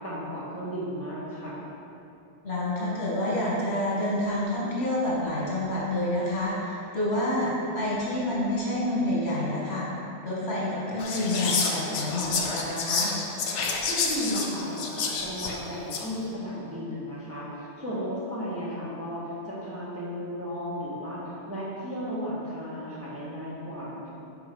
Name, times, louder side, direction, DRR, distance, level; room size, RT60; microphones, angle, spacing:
voice 1, 0.0-1.5 13.9-24.1, equal, 10° right, -9 dB, 1.6 m, -34 dB
voice 2, 2.4-9.9 10.2-13.1, left 1 dB, 65° left, -7 dB, 1.9 m, -28 dB
Whispering, 11.0-16.2, left 4 dB, 85° left, 1.1 m, -29 dB
5.8 x 5.1 x 5.4 m, 2.7 s
omnidirectional pair, 1.2 m